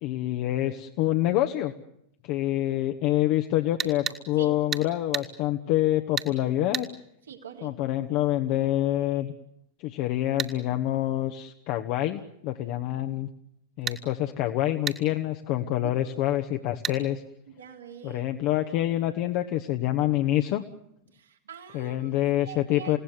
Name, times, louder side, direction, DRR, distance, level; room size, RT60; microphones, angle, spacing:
voice 1, 0.0-1.7 2.2-6.9 7.6-9.3 9.8-13.3 13.8-17.2 18.0-20.6 21.7-23.0, left 14 dB, 45° left, 5 dB, 1.3 m, -26 dB
sound 1, 3.8-4.2 4.7-4.9 5.1-5.3 6.2-6.3 6.7-6.9 10.4-10.5 13.9-14.0 14.9-15.0 16.8-17.0, right 8 dB, 25° right, 2.2 m, -30 dB
voice 2, 7.3-7.8 13.8-14.0 15.8-15.9 17.5-18.2 21.1-23.0, right 7 dB, 65° right, 3 dB, 3.6 m, -44 dB
29.0 x 17.5 x 9.5 m, 0.76 s
figure-of-eight pair, 90°, 0 cm